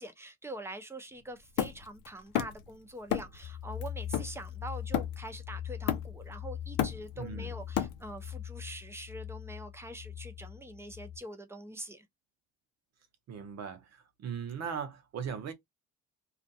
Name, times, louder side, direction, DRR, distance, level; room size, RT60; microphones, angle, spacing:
voice 1, 0.0-12.0, right 1 dB, 10° right, 0.6 m, -44 dB
Hammer, 1.6-2.7 3.1-3.4 3.8-5.4 5.9-6.3 6.6-8.3, left 11 dB, 90° left, 0.6 m, -33 dB
sound 1, 3.4-11.2, left 10 dB, 30° left, 1.0 m, -42 dB
voice 2, 7.2-7.5 13.3-13.9 14.2-15.5, right 7 dB, 55° right, 0.7 m, -38 dB
2.4 x 2.3 x 2.6 m
cardioid pair, 110°, 31 cm